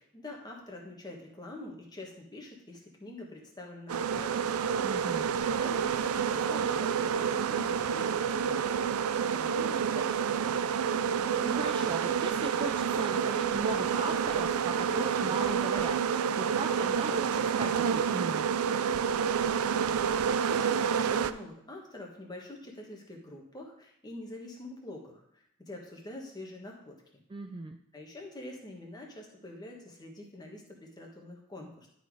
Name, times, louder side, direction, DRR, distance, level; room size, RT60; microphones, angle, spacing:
voice 1, 0.0-4.7 5.6-10.6 19.6-27.0 27.9-31.9, left 1 dB, 20° left, 0 dB, 1.4 m, -45 dB
sound 1, 3.9-21.3, right 7 dB, 90° right, 0.4 m, -29 dB
voice 2, 4.8-5.3 11.4-18.5 27.3-27.8, right 2 dB, 25° right, 5 dB, 0.4 m, -38 dB
11.5 x 4.1 x 4.7 m, 0.72 s
head